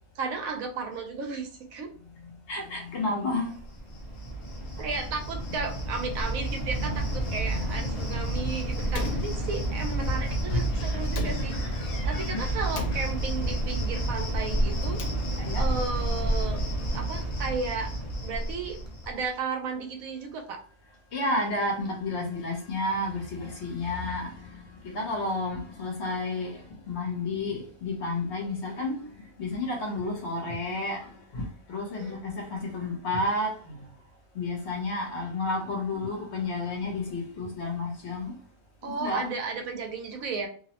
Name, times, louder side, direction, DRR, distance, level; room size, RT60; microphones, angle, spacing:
voice 1, 0.2-1.9 4.8-15.0 15.5-16.6 16.9-17.9 18.2-18.8 19.1-20.6 31.9-32.1 38.8-40.5, right 4 dB, 85° right, 1.1 m, -34 dB
voice 2, 2.5-3.6 4.8-4.9 6.8-7.1 7.5-9.1 10.2-12.6 12.9-13.0 15.4-15.7 21.1-33.9 34.3-38.4 38.8-39.3, left 2 dB, 60° left, 1.0 m, -32 dB
Cricket, 3.5-19.3, right 1 dB, 35° left, 0.5 m, -30 dB
Slam, 8.9-10.0 11.0-12.0 12.7-13.6 14.7-15.7, left 4 dB, 90° left, 1.0 m, -38 dB
2.7 x 2.0 x 2.8 m
omnidirectional pair, 1.4 m